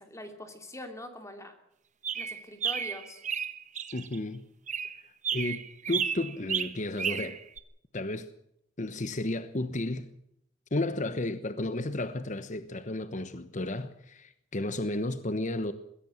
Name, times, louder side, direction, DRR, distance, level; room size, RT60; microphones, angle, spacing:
voice 1, 0.0-1.5 2.1-3.2, left 1 dB, 15° left, 2.8 m, -43 dB
sound 1, 2.0-4.2 4.7-7.6, right 7 dB, 40° right, 1.2 m, -32 dB
voice 2, 3.9-4.4 5.0-7.4 7.9-8.3 8.8-10.1 10.7-15.7, left 2 dB, 40° left, 1.1 m, -33 dB
21.5 x 16.5 x 7.6 m
head